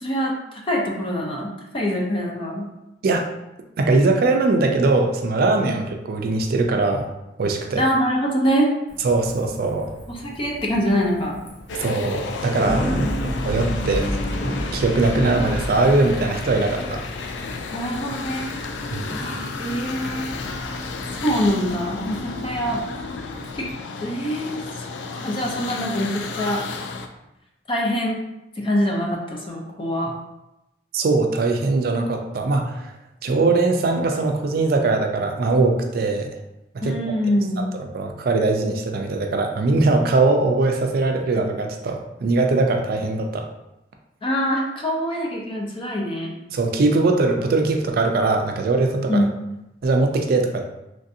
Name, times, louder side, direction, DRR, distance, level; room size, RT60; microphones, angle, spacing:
voice 1, 0.0-2.7 5.7-5.8 7.8-8.7 10.1-11.4 12.7-13.3 17.7-18.5 19.1-20.3 21.2-22.8 23.5-23.7 24.0-24.9 25.2-26.6 27.7-28.2 28.6-30.1 36.8-37.7 44.2-46.4 49.1-49.3, equal, 30° left, -1 dB, 0.5 m, -24 dB
voice 2, 3.8-7.1 7.4-7.9 9.0-9.9 11.8-12.8 13.4-14.2 14.7-17.0 18.9-19.1 30.9-32.9 33.2-36.3 36.8-37.2 37.6-43.5 46.5-49.3 49.8-50.6, right 3 dB, 55° right, 4 dB, 0.4 m, -21 dB
Bicycle, 8.9-23.7, equal, 70° left, 0.7 m, -33 dB
sound 1, 11.7-27.1, left 3 dB, 85° left, 0.3 m, -32 dB
3.1 x 2.6 x 2.6 m, 0.91 s
head